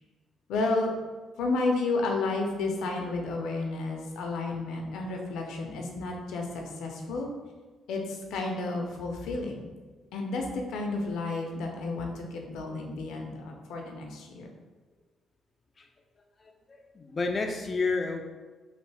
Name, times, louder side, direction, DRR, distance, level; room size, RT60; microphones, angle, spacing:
voice 1, 0.5-0.9 1.4-7.3 7.9-9.7 10.1-14.5, left 3 dB, 85° left, 2 dB, 0.5 m, -31 dB
voice 2, 16.4-18.2, left 3 dB, 35° left, 3 dB, 0.3 m, -31 dB
3.1 x 2.4 x 3.3 m, 1.3 s
cardioid pair, 90°, 0 cm